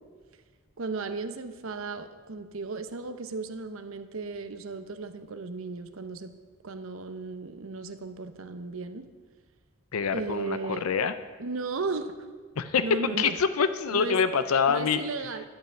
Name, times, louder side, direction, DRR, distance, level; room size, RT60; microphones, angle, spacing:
voice 1, 0.8-6.3 6.6-9.1 10.1-10.9 11.4-12.1 12.8-13.3 13.9-14.2 14.7-15.4, right 3 dB, 65° right, 9 dB, 0.7 m, -35 dB
voice 2, 9.9-11.1 12.6-15.0, left 6 dB, 80° left, 12 dB, 0.5 m, -25 dB
12.0 x 5.7 x 8.7 m, 1.4 s
head